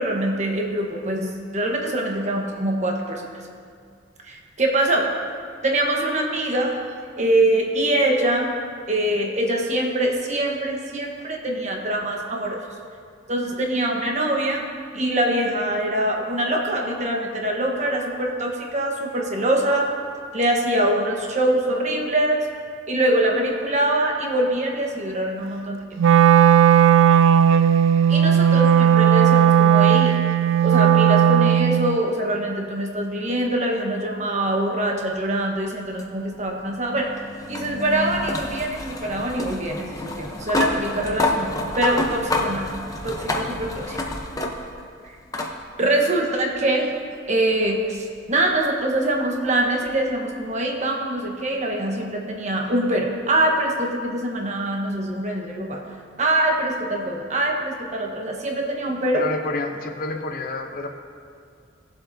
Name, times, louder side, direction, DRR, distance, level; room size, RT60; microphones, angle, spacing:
voice 1, 0.0-3.3 4.3-5.1 5.6-6.8 7.2-8.5 8.9-12.6 13.3-14.6 14.9-19.9 20.3-22.4 22.9-25.8 28.1-30.2 30.6-37.1 37.5-42.7 43.0-44.1 45.0-45.1 45.8-46.9 47.3-55.8 56.2-59.2, right 1 dB, 35° right, 0 dB, 1.2 m, -24 dB
Wind instrument woodwind instrument, 26.0-32.0, right 9 dB, 70° right, 0.3 m, -15 dB
sound 1, 36.0-44.9 45.3-45.5 46.9-47.0 49.8-49.9, left 2 dB, 15° left, 0.8 m, -28 dB
voice 2, 59.1-60.9, left 2 dB, 45° left, 4 dB, 0.8 m, -29 dB
18.0 x 7.6 x 2.7 m, 2.2 s
head